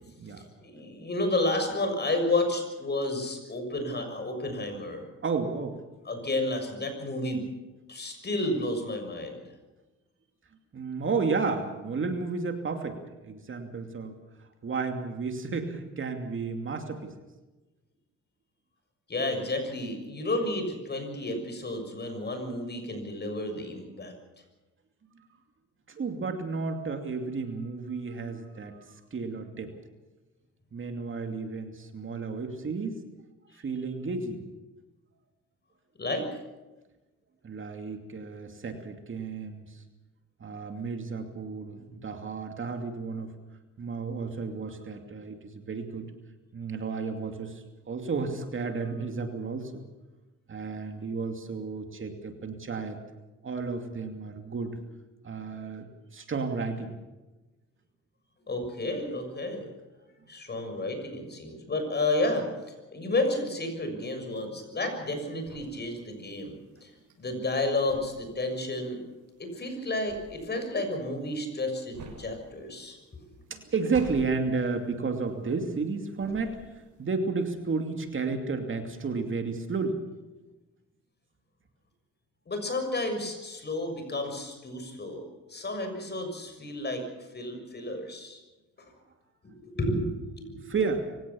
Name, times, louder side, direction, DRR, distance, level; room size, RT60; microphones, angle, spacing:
voice 1, 0.0-0.4 5.2-5.8 10.7-14.2 14.6-17.1 25.9-28.8 29.1-29.7 30.7-32.9 33.6-34.4 37.4-39.7 40.4-43.3 43.8-46.1 46.5-49.8 50.5-53.0 53.4-54.8 55.2-55.9 56.1-56.9 73.5-76.6 77.0-80.0 90.6-91.0, right 4 dB, 40° right, 5 dB, 2.7 m, -32 dB
voice 2, 0.6-5.1 6.0-7.5 7.9-9.4 19.1-24.1 36.0-36.3 58.5-59.6 60.3-66.9 67.2-69.0 69.4-73.0 82.5-87.0 87.3-88.4 89.4-90.7, left 2 dB, 35° left, 6 dB, 6.7 m, -31 dB
sound 1, 64.7-75.9 76.2-77.0, right 3 dB, 80° right, 6.7 m, -49 dB
24.5 x 17.0 x 7.1 m, 1.1 s
cardioid pair, 90°, 30 cm